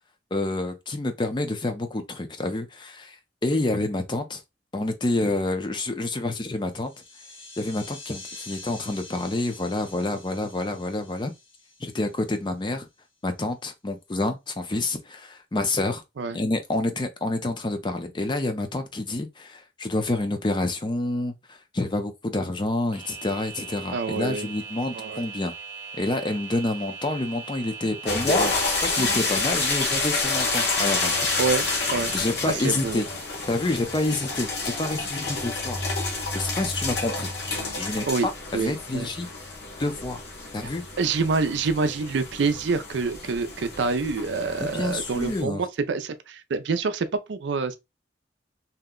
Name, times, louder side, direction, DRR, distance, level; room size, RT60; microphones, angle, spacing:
voice 1, 0.3-3.2 3.4-4.4 4.7-6.9 7.6-11.3 11.8-12.9 13.2-16.0 16.3-25.5 26.0-28.6 28.8-31.3 32.1-33.0 33.5-35.8 36.3-37.3 37.8-38.1 38.5-39.3 39.8-40.2 40.5-40.8 44.6-45.6, left 2 dB, 25° left, 0.5 m, -28 dB
sound 1, 6.6-12.7, left 3 dB, 75° left, 1.3 m, -46 dB
sound 2, 22.9-32.2, right 5 dB, 15° right, 0.8 m, -40 dB
voice 2, 23.9-24.5 24.9-25.2 31.4-32.1 32.5-33.0 38.1-38.3 38.5-39.1 41.0-47.8, right 4 dB, 75° right, 0.4 m, -26 dB
sound 3, 28.1-45.4, left 3 dB, 60° left, 1.1 m, -29 dB
2.8 x 2.1 x 3.6 m
head